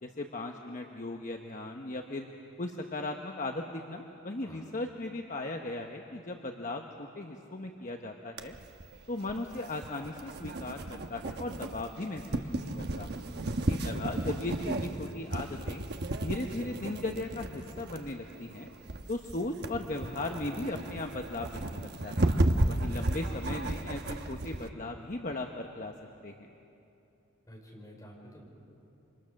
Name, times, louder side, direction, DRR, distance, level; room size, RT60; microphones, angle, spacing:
voice 1, 0.0-2.3 2.6-8.5 9.1-13.1 13.7-15.8 16.2-18.7 19.1-22.3 22.7-25.9 26.2-26.5, left 2 dB, 40° left, 3 dB, 1.0 m, -37 dB
sound 1, 8.4-24.7, right 1 dB, 55° right, 1.0 m, -34 dB
voice 2, 13.0-13.7 22.2-22.7 27.5-28.5, equal, 15° left, -2 dB, 5.0 m, -52 dB
28.5 x 26.0 x 6.5 m, 2.8 s
head